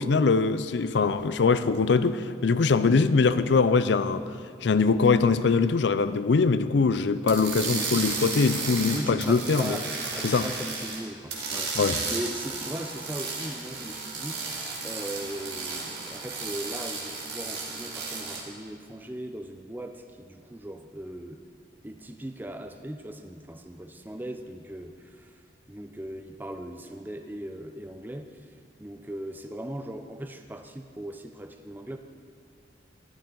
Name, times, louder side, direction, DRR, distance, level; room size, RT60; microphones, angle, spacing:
voice 1, 0.0-4.2 4.6-9.8 10.2-10.5 11.8-12.0, left 4 dB, 70° left, 13 dB, 0.5 m, -22 dB
sound 1, 7.3-11.0 11.3-18.4, right 4 dB, 65° right, 2.1 m, -33 dB
voice 2, 8.9-14.4 14.8-21.4 21.8-25.4 25.7-28.5 28.8-32.0, right 1 dB, 10° right, 6 dB, 0.5 m, -38 dB
13.5 x 12.0 x 3.9 m, 2.2 s
head